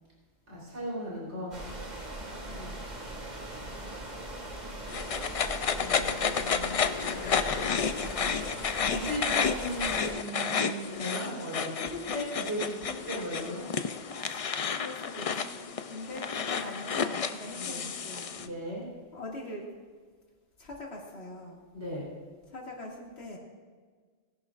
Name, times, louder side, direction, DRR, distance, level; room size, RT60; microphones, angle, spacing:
voice 1, 0.5-1.6 5.8-8.3 8.8-13.6 17.5-17.8 18.4-18.9 21.7-22.1, equal, 75° right, -6 dB, 4.2 m, -37 dB
sound 1, 1.5-10.1, right 1 dB, 40° right, 2.0 m, -40 dB
voice 2, 2.4-2.8 14.2-14.5 14.8-18.3 19.1-19.7 20.6-21.6 22.5-23.4, left 2 dB, 65° left, -2 dB, 2.5 m, -42 dB
sound 2, 4.9-18.5, left 6 dB, 50° left, 0.4 m, -31 dB
20.0 x 11.0 x 2.5 m, 1.5 s
omnidirectional pair, 1.2 m